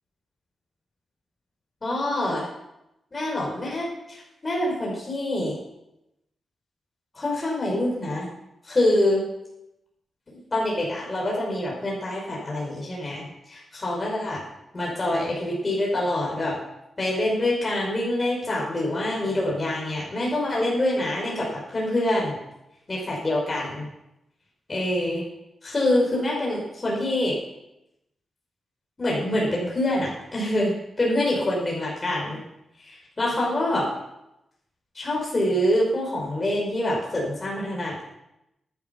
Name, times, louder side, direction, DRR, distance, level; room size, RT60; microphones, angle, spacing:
voice 1, 1.8-2.5 3.1-5.6 7.1-8.3 8.6-9.2 10.3-14.4 14.7-16.6 17.0-22.4 22.9-23.9 24.7-25.2 25.6-27.4 29.0-32.4 32.8-33.9 34.9-38.0, left 1 dB, 35° left, -3 dB, 5.8 m, -25 dB
11.5 x 11.0 x 5.5 m, 0.87 s
cardioid pair, 60°, 0 cm